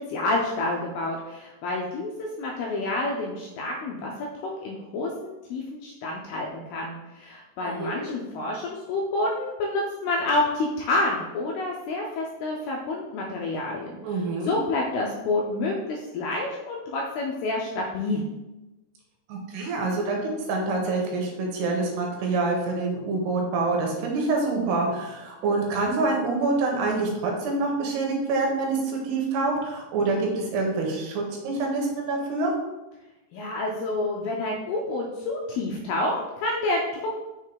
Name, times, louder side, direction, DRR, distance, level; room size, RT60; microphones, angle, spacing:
voice 1, 0.1-4.1 4.4-14.0 14.5-18.2 33.3-37.2, left 2 dB, 80° left, -1 dB, 2.3 m, -28 dB
voice 2, 7.6-8.0 14.0-14.6 19.3-28.8 29.0-32.5, right 3 dB, 75° right, 0 dB, 2.9 m, -26 dB
6.3 x 3.7 x 4.5 m, 1.0 s
omnidirectional pair, 5.1 m